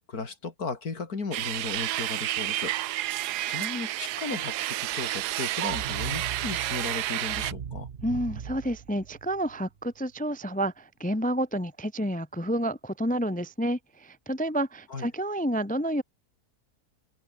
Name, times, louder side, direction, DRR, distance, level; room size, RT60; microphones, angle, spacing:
voice 1, 0.0-2.7 3.0-7.9 14.9-15.1, left 4 dB, 70° left, 3.4 m, -36 dB
sound 1, 1.3-7.5, right 15 dB, 90° right, 1.2 m, -30 dB
sound 2, 5.6-9.7, right 7 dB, 40° right, 1.1 m, -39 dB
voice 2, 8.0-16.0, right 1 dB, 10° left, 0.3 m, -29 dB
open air
omnidirectional pair, 1.7 m